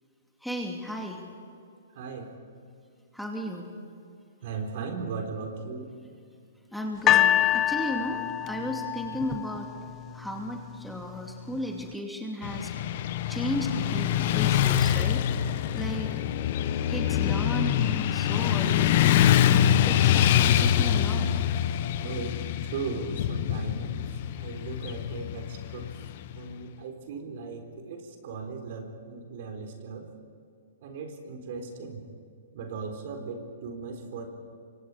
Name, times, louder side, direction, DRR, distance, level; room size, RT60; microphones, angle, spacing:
voice 1, 0.4-1.2 3.1-3.7 6.7-9.7 10.1-12.7 13.3-16.1 16.9-19.0 19.5-21.3 24.3-24.4, equal, ahead, 1 dB, 2.6 m, -35 dB
voice 2, 1.9-2.3 4.4-5.9 22.0-22.4 22.6-24.0 24.4-25.9 26.4-30.1 30.8-32.0 32.5-34.3, right 4 dB, 50° right, 4 dB, 4.0 m, -37 dB
sound 1, 7.1-10.2 11.0-11.1, left 12 dB, 25° left, 0.6 m, -25 dB
Motorcycle / Traffic noise roadway noise, 12.4-26.5, left 10 dB, 50° left, 1.2 m, -25 dB
28.5 x 24.5 x 5.0 m, 2.4 s
figure-of-eight pair, 120°, 0 cm